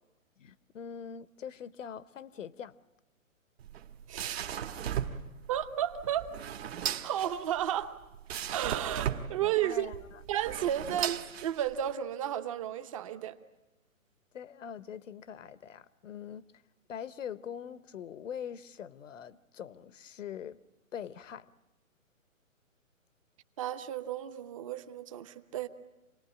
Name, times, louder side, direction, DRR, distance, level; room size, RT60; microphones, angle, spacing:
voice 1, 0.4-2.7 9.4-10.2 10.9-11.0 14.3-16.4 16.9-20.6 20.9-21.5, left 8 dB, 65° left, 1.0 m, -43 dB
sound 1, 3.6-11.9, right 9 dB, 50° right, 1.4 m, -37 dB
voice 2, 4.1-4.5 5.5-6.3 7.0-8.0 8.5-9.9 10.3-13.4 23.6-25.7, right 11 dB, 25° right, 0.9 m, -33 dB
27.0 x 19.0 x 10.0 m
hypercardioid pair, 155°, 41 cm